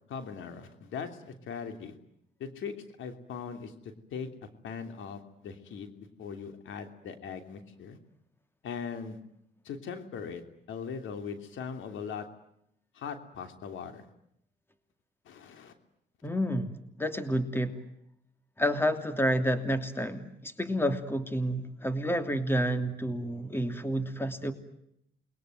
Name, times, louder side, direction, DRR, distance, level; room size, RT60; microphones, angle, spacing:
voice 1, 0.1-1.9 2.4-4.3 4.6-5.9 6.2-8.0 8.6-9.2 9.6-10.4 10.7-12.3 12.9-14.1 15.2-15.7, left 6 dB, 75° left, 7 dB, 3.1 m, -40 dB
voice 2, 16.2-17.7 18.6-24.5, equal, 10° left, 8 dB, 2.9 m, -29 dB
29.0 x 22.0 x 9.2 m, 0.77 s
cardioid pair, 90°, 20 cm